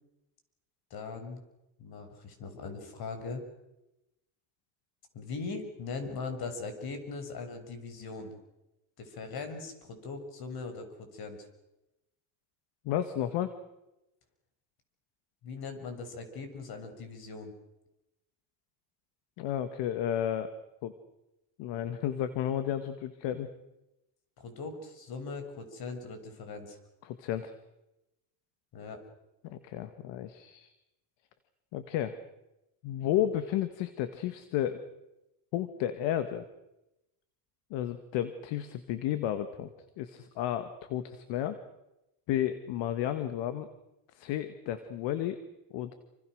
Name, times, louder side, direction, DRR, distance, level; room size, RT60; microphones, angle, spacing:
voice 1, 0.9-1.4 1.8-3.4 5.1-8.4 9.0-11.5 15.4-17.5 24.4-26.8 28.7-29.0, left 4 dB, 55° left, 7 dB, 6.8 m, -40 dB
voice 2, 12.9-13.5 19.4-20.5 20.8-20.9 21.6-23.5 27.0-27.5 29.4-30.7 31.7-32.1 32.8-34.8 35.5-36.5 37.7-41.6 42.3-43.7 44.2-45.4 45.7-45.9, left 11 dB, 70° left, 10 dB, 2.0 m, -32 dB
29.0 x 26.0 x 6.5 m, 0.93 s
supercardioid pair, 95°, 44 cm